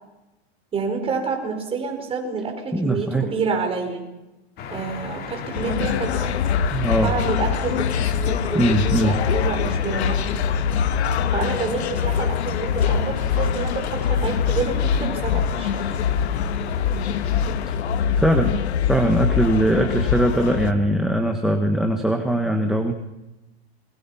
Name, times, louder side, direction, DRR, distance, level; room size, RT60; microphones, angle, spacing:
voice 1, 0.7-4.0 4.7-6.3 7.0-10.4 11.3-15.8, right 4 dB, 15° right, 3 dB, 5.0 m, -28 dB
voice 2, 2.7-3.3 6.7-7.1 8.5-9.2 17.7-17.8 18.2-18.5 18.9-22.9, right 1 dB, ahead, 6 dB, 1.6 m, -21 dB
sound 1, 4.6-17.8, left 7 dB, 30° left, 2.5 m, -35 dB
sound 2, 5.5-20.7, left 7 dB, 85° left, 1.9 m, -23 dB
27.5 x 22.5 x 5.9 m, 1.0 s
supercardioid pair, 150°, 32 cm